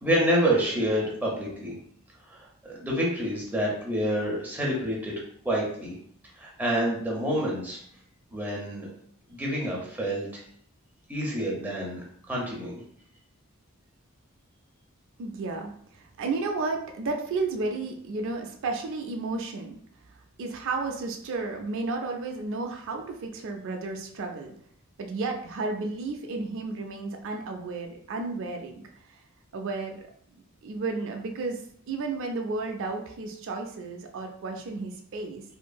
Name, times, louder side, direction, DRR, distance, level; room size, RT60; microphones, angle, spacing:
voice 1, 0.0-1.7 2.3-5.1 5.4-5.9 6.4-7.8 8.3-8.9 9.3-10.4 11.1-12.7, equal, 10° right, -3 dB, 0.6 m, -28 dB
voice 2, 15.2-19.8 20.4-24.5 25.0-28.8 29.5-30.0 30.3-31.6 31.9-35.4, right 3 dB, 60° right, 3 dB, 0.4 m, -32 dB
2.8 x 2.5 x 2.2 m, 0.63 s
head